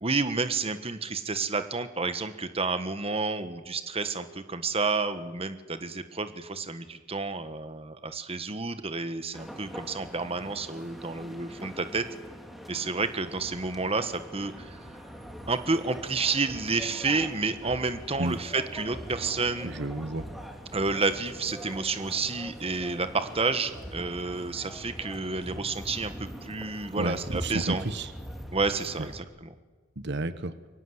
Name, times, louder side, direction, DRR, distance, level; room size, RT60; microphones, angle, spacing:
voice 1, 0.0-12.0 12.7-14.8 15.5-19.7 20.7-27.8 28.5-29.5, right 4 dB, 30° right, 10 dB, 1.4 m, -30 dB
sound 1, 9.3-29.2, equal, ahead, 2.9 m, -43 dB
voice 2, 19.6-20.3 26.9-28.1 30.0-30.5, right 2 dB, 60° right, 12 dB, 1.3 m, -31 dB
27.5 x 23.5 x 8.0 m, 1.3 s
head